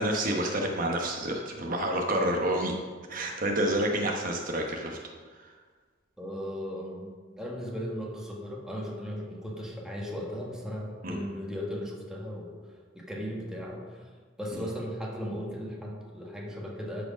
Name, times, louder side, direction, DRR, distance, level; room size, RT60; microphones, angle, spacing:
voice 1, 0.0-2.7 3.1-5.0 5.3-5.4 11.0-11.2 14.5-14.6, right 1 dB, 50° right, 1 dB, 1.0 m, -29 dB
voice 2, 6.2-7.1 7.4-14.0 14.4-17.0, equal, 5° right, -3 dB, 1.5 m, -37 dB
13.0 x 4.9 x 5.1 m, 1.5 s
head